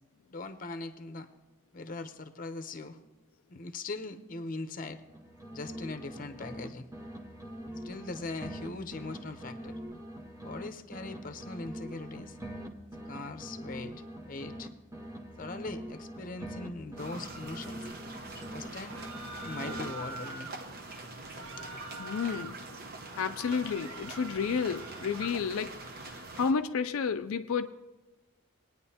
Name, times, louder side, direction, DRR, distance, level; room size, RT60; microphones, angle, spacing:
voice 1, 0.3-1.3 1.7-3.0 3.5-5.0 5.5-6.9 7.8-9.8 10.4-12.4 13.0-13.9 14.3-14.7 15.4-17.9 18.5-19.0 19.4-20.5 21.4-21.7, left 3 dB, 40° left, 8 dB, 0.7 m, -40 dB
sound 1, 5.0-6.7 6.9-10.7 10.9-14.7 14.9-18.7 18.9-20.3, equal, 15° right, 0.8 m, -43 dB
sound 2, 17.0-26.5, right 2 dB, 45° right, 0.9 m, -44 dB
sound 3, 18.8-20.6 21.2-22.6 23.0-25.3, right 3 dB, 90° right, 1.3 m, -45 dB
voice 2, 22.0-22.6 23.2-27.7, left 6 dB, 85° left, 8 dB, 0.4 m, -31 dB
21.0 x 9.4 x 2.8 m, 1.1 s
head